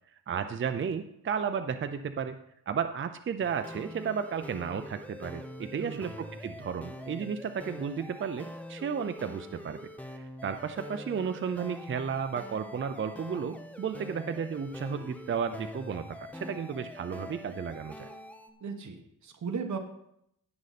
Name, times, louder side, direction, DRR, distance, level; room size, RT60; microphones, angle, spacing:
voice 1, 0.3-2.4 2.7-9.8 10.1-18.1, right 6 dB, 35° right, 9 dB, 0.6 m, -33 dB
sound 1, 3.4-18.5, equal, 5° left, 0.9 m, -44 dB
voice 2, 5.7-6.2 18.6-19.8, right 5 dB, 60° right, 3 dB, 1.4 m, -37 dB
16.5 x 6.3 x 4.2 m, 0.76 s
wide cardioid pair, 130°, 33 cm